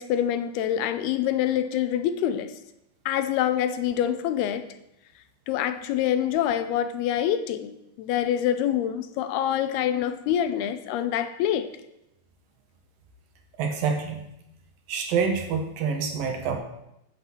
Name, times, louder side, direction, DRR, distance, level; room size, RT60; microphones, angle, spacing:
voice 1, 0.0-2.5 3.1-4.7 5.5-11.7, left 10 dB, 85° left, 10 dB, 2.6 m, -26 dB
voice 2, 13.6-14.2 14.9-16.6, right 6 dB, 65° right, 4 dB, 2.7 m, -27 dB
9.7 x 7.5 x 7.6 m, 0.84 s
omnidirectional pair, 4.7 m